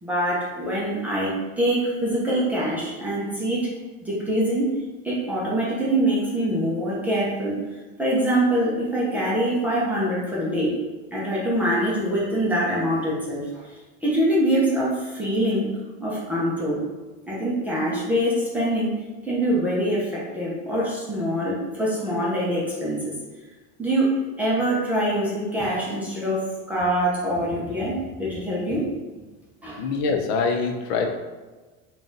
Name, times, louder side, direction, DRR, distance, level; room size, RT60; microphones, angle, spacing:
voice 1, 0.0-3.7 4.0-4.7 5.0-7.6 8.0-10.7 11.1-13.7 14.0-15.7 16.0-16.8 17.3-18.9 19.2-23.1 23.8-24.1 24.4-28.9 29.6-29.8, right 1 dB, 5° right, -7 dB, 0.5 m, -24 dB
voice 2, 29.8-31.1, left 4 dB, 80° left, 4 dB, 0.7 m, -24 dB
3.9 x 2.4 x 3.8 m, 1.3 s
cardioid pair, 175°, 31 cm